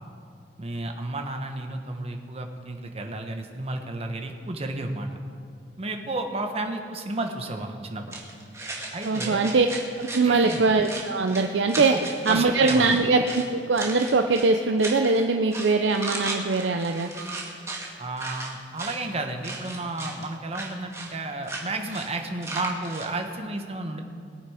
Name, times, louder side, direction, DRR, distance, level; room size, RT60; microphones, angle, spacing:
voice 1, 0.6-5.1 5.8-8.2 8.9-9.5 10.2-10.6 11.9-12.0 12.3-13.0 18.0-24.0, right 2 dB, 35° right, 4 dB, 1.1 m, -32 dB
sound 1, 8.1-13.5 13.7-14.5 14.8-15.2 15.5-17.9 18.2-19.0 19.4-20.3 20.5-21.1 21.4-21.6 21.9-22.1 22.4-23.1, right 3 dB, 15° right, 1.7 m, -35 dB
voice 2, 9.0-9.7 10.0-11.9 12.3-17.1, right 3 dB, 75° right, 5 dB, 0.6 m, -22 dB
21.0 x 8.5 x 4.9 m, 2.3 s
head